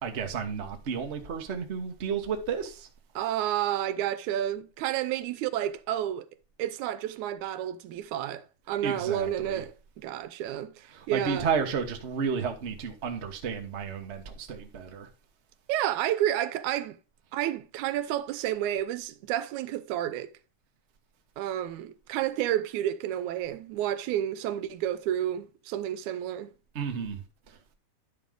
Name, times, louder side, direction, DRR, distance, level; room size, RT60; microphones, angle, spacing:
voice 1, 0.0-2.9 8.8-9.6 10.9-15.1 26.7-27.2, right 6 dB, 65° right, 0.6 m, -32 dB
voice 2, 3.2-6.3 6.6-11.5 15.7-17.0 17.3-20.3 21.4-26.6, right 12 dB, 85° right, 2.1 m, -30 dB
10.5 x 5.4 x 3.7 m
omnidirectional pair, 3.4 m